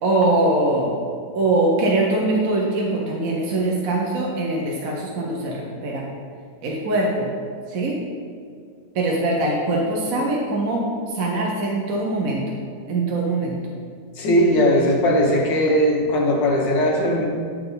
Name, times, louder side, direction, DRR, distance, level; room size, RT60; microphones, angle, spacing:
voice 1, 0.0-1.0 1.3-6.1 6.6-7.3 7.7-8.0 8.9-10.9 11.1-12.4 12.9-13.6, right 2 dB, 55° right, -2 dB, 1.2 m, -22 dB
voice 2, 14.2-17.2, equal, 85° left, 0 dB, 1.8 m, -18 dB
10.0 x 4.4 x 3.9 m, 2.2 s
omnidirectional pair, 1.9 m